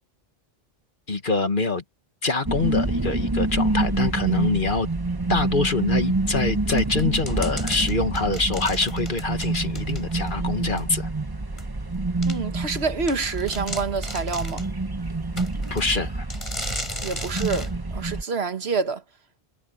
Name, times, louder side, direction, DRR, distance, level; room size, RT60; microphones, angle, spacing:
voice 1, 1.1-1.8 2.2-4.9 5.3-11.1 15.7-16.3, left 3 dB, 55° left, 1.9 m, -25 dB
sound 1, 2.5-18.2, right 2 dB, 20° right, 1.2 m, -27 dB
sound 2, 6.7-10.3 10.8-10.9 11.6-11.7 12.2-12.4 12.8-12.9 13.1-14.7 15.4-15.9 16.3-17.7, left 1 dB, 30° left, 8.2 m, -36 dB
voice 2, 12.2-14.6 17.0-19.0, right 4 dB, 85° right, 1.7 m, -27 dB
omnidirectional pair, 1.0 m